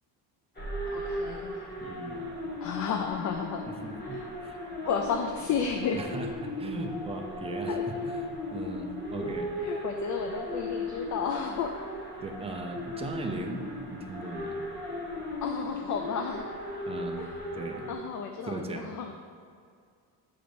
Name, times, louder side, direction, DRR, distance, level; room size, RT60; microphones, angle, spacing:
sound 1, 0.6-17.9, left 1 dB, 25° left, 1.2 m, -36 dB
voice 1, 0.9-1.7 2.6-3.7 4.1-4.2 4.8-6.0 7.7-7.8 9.6-11.8 15.4-16.5 17.2-17.3 17.9-19.1, left 6 dB, 45° left, 4 dB, 0.4 m, -32 dB
voice 2, 1.8-2.2 3.7-4.6 5.9-9.5 12.2-14.6 16.9-17.9 18.4-18.9, right 3 dB, 15° right, 2 dB, 0.4 m, -38 dB
7.7 x 3.9 x 5.1 m, 2.2 s
cardioid pair, 160°, 42 cm